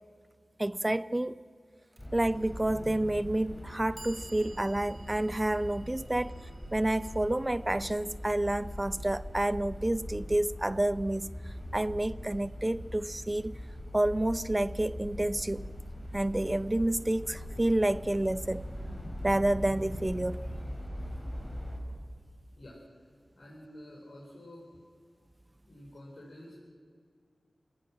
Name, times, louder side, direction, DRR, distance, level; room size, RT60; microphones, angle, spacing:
voice 1, 0.6-1.3 2.1-6.3 6.7-13.6 13.9-15.7 16.1-18.6 19.2-20.4, right 1 dB, 20° right, 17 dB, 0.4 m, -29 dB
sound 1, 2.0-21.8, equal, 15° left, 4.5 m, -41 dB
Clock, 2.0-2.1 3.0-3.1 3.7-9.7, right 3 dB, 45° right, 1.6 m, -55 dB
voice 2, 22.6-23.1 23.4-24.6 25.7-26.6, left 1 dB, 60° left, -4 dB, 4.6 m, -49 dB
28.0 x 17.0 x 6.2 m, 2.1 s
wide cardioid pair, 90°, 0 cm